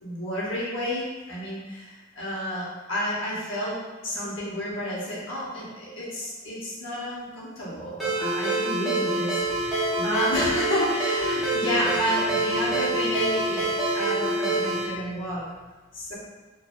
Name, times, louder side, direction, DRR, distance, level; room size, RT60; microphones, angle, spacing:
voice 1, 0.0-3.8 4.0-15.4 15.9-16.1, equal, 70° left, -8 dB, 1.2 m, -30 dB
Ringtone, 8.0-14.9, right 2 dB, ahead, 1.0 m, -26 dB
4.0 x 2.6 x 2.5 m, 1.2 s
head